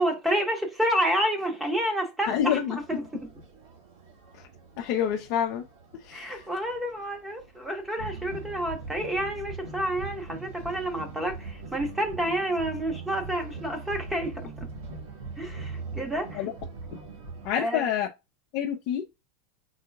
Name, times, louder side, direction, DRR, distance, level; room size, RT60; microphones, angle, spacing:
voice 1, 0.0-3.3 6.1-14.5 15.4-16.5 17.5-17.9, equal, 10° right, 1.2 m, -29 dB
voice 2, 2.3-2.8 4.8-5.6 6.1-6.4 16.4-16.5 17.4-18.1 18.5-19.0, left 9 dB, 55° left, 0.5 m, -27 dB
sound 1, 2.8-17.5, right 4 dB, 85° right, 1.7 m, -41 dB
4.3 x 3.8 x 2.3 m
supercardioid pair, 130°, 0 cm